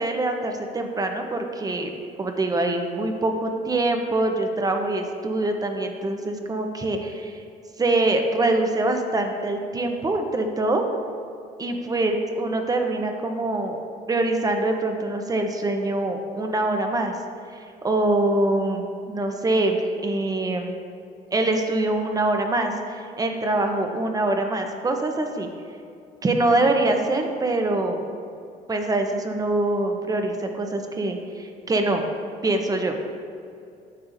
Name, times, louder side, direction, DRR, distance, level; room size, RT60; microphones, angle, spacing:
voice 1, 0.0-1.9 2.2-7.4 7.8-10.8 11.6-17.2 17.8-20.7 21.3-25.5 26.2-28.1 28.7-32.1 32.4-33.0, right 2 dB, 20° right, 4 dB, 0.8 m, -24 dB
9.7 x 6.6 x 2.6 m, 2.5 s
cardioid pair, 110°, 17 cm